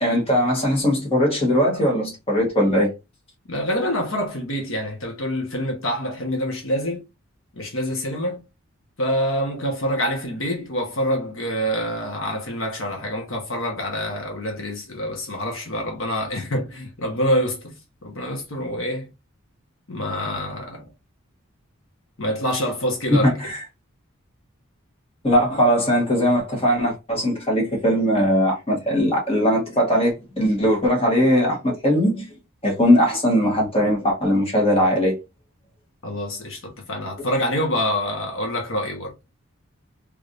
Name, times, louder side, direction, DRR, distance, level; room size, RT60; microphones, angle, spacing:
voice 1, 0.0-2.9 23.1-23.6 25.2-32.3 32.6-35.2, equal, 30° left, 1.4 m, -20 dB
voice 2, 3.5-7.0 7.5-8.4 9.0-17.7 18.0-19.1 19.9-20.9 22.2-23.3 36.0-39.1, equal, 70° left, 1.1 m, -26 dB
3.3 x 3.3 x 2.6 m
head